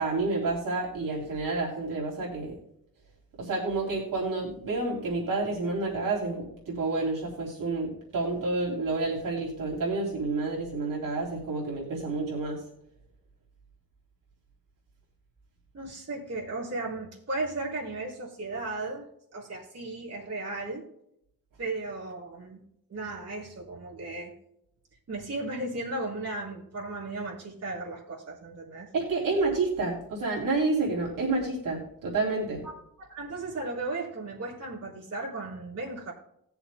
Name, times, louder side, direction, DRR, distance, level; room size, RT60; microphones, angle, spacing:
voice 1, 0.0-2.5 3.4-12.6 28.9-32.6, right 3 dB, 65° right, -3 dB, 3.2 m, -29 dB
voice 2, 15.7-19.1 19.3-20.9 21.6-22.6 22.9-24.3 25.1-28.9 32.6-32.7 33.0-36.1, right 2 dB, 45° right, -5 dB, 4.0 m, -35 dB
20.0 x 7.0 x 2.2 m, 0.77 s
wide cardioid pair, 145°, 35 cm